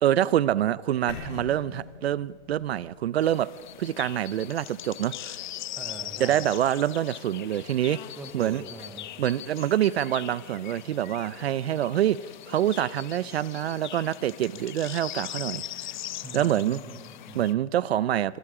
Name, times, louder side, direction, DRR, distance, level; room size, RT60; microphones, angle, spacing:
voice 1, 0.0-3.5 3.8-5.4 6.2-8.0 8.3-8.6 9.2-12.2 12.5-15.6 16.3-16.8 17.3-18.4, right 11 dB, 55° right, 20 dB, 0.7 m, -26 dB
sound 1, 1.1-5.1, left 6 dB, 60° left, 6.2 m, -45 dB
sound 2, 3.2-17.5, left 12 dB, 40° left, 0.7 m, -40 dB
voice 2, 5.7-6.5 8.2-9.1 16.2-17.5, right 4 dB, 5° right, 7 dB, 0.6 m, -43 dB
25.5 x 25.5 x 4.9 m, 1.5 s
hypercardioid pair, 165°, 36 cm